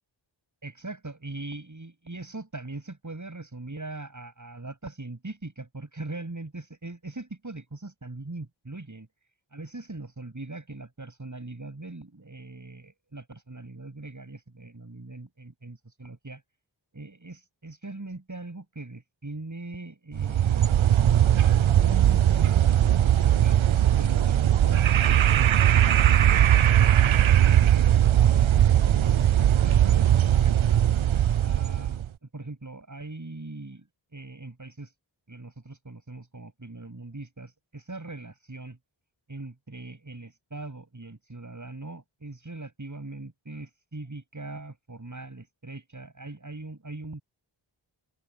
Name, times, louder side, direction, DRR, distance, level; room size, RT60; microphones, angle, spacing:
voice 1, 0.6-9.1 9.5-16.4 16.9-20.9 21.8-23.6 24.0-28.9 29.3-30.8 31.4-33.9 34.1-34.9 35.3-38.8 39.3-47.2, right 2 dB, 40° right, 7.7 m, -41 dB
sound 1, 20.1-32.1, right 11 dB, 90° right, 0.7 m, -20 dB
open air
wide cardioid pair, 80°, 46 cm